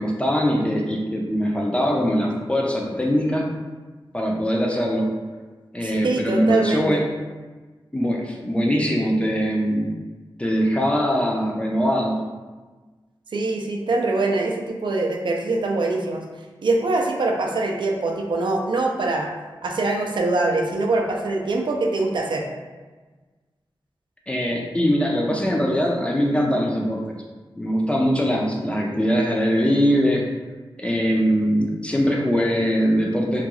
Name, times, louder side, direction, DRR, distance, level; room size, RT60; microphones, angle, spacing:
voice 1, 0.0-3.5 4.1-5.1 5.7-7.1 7.9-10.0 10.4-12.2 24.3-27.0 27.6-30.2 30.8-33.5, equal, 15° left, -1 dB, 0.4 m, -22 dB
voice 2, 5.8-7.0 13.3-16.2 16.6-19.3 19.6-22.5, right 2 dB, 65° right, 1 dB, 0.4 m, -23 dB
2.3 x 2.3 x 2.9 m, 1.3 s
wide cardioid pair, 105°, 9 cm